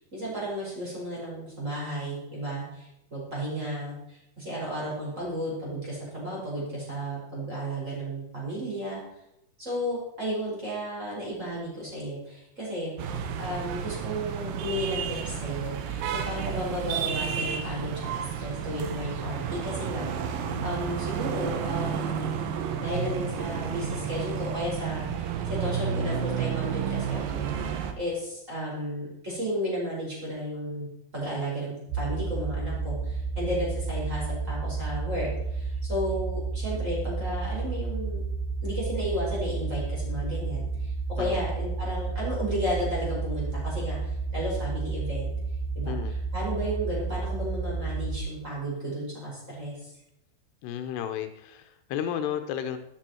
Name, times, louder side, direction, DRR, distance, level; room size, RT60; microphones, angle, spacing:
voice 1, 0.1-9.0 9.6-12.9 13.4-22.4 22.8-30.9 31.1-38.2 38.6-45.3 45.8-49.9, equal, 15° right, -5 dB, 5.2 m, -33 dB
sound 1, 13.0-27.9, right 7 dB, 70° right, 2.4 m, -31 dB
sound 2, 31.9-48.2, right 4 dB, 90° right, 1.6 m, -31 dB
voice 2, 45.9-46.2 50.6-52.8, left 9 dB, 85° left, 9 dB, 3.0 m, -33 dB
12.5 x 10.0 x 4.5 m, 0.83 s
omnidirectional pair, 4.8 m